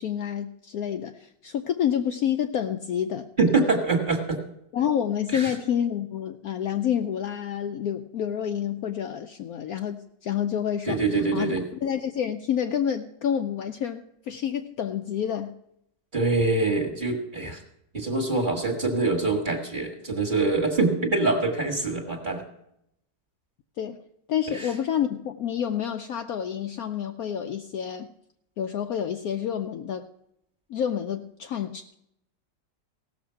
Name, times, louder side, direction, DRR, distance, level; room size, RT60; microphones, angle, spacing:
voice 1, 0.0-3.3 4.7-11.5 11.8-15.5 23.8-24.0 24.3-28.1 28.6-30.1 30.7-31.9, left 9 dB, 70° left, 6 dB, 0.9 m, -28 dB
voice 2, 3.4-4.4 5.3-5.5 10.9-11.6 16.1-17.6 17.9-22.4 24.5-24.7, right 3 dB, 30° right, 3 dB, 1.7 m, -24 dB
16.5 x 6.9 x 5.7 m, 0.78 s
omnidirectional pair, 1.9 m